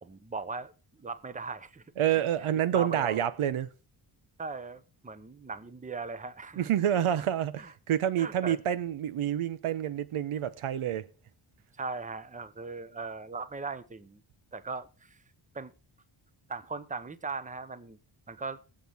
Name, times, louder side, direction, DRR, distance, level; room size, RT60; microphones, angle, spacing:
voice 1, 0.0-0.7 1.0-1.8 2.1-2.2 2.7-3.2 4.4-6.7 7.6-7.7 8.2-8.6 11.8-14.2 14.5-15.2 15.5-15.7 16.5-18.0 18.3-18.6, right 4 dB, 15° right, 0.8 m, -39 dB
voice 2, 2.0-3.7 6.6-11.1, right 10 dB, 85° right, 0.9 m, -28 dB
21.5 x 7.7 x 3.5 m
wide cardioid pair, 105°, 49 cm